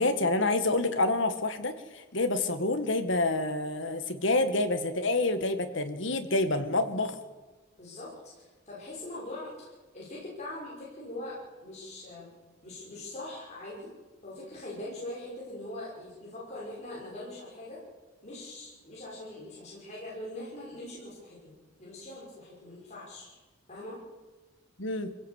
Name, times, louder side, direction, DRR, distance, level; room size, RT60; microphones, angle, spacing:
voice 1, 0.0-7.2 24.8-25.1, left 2 dB, 65° left, 8 dB, 2.0 m, -28 dB
voice 2, 7.8-12.3 12.6-13.9 14.2-17.8 18.2-21.5 21.8-23.4 23.7-24.0, left 1 dB, 35° left, -6 dB, 6.3 m, -42 dB
26.0 x 17.0 x 8.4 m, 1.3 s
head